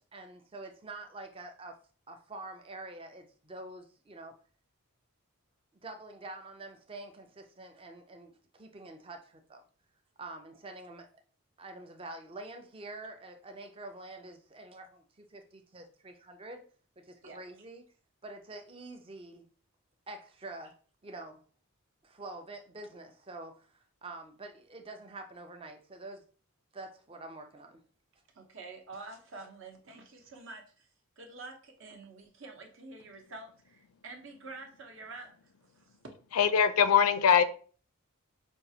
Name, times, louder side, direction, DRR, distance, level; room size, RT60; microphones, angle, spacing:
voice 1, 0.1-1.8 2.1-4.3 5.8-9.6 10.2-11.2 11.6-16.6 17.0-17.8 18.2-19.5 20.1-20.8 21.0-21.4 22.0-26.2 26.7-27.8, right 2 dB, 25° right, 0.4 m, -46 dB
voice 2, 28.3-30.9 31.2-35.3 35.7-35.9, right 3 dB, 60° right, 0.8 m, -47 dB
voice 3, 36.3-37.4, left 7 dB, 85° left, 0.4 m, -22 dB
5.2 x 2.4 x 2.7 m
head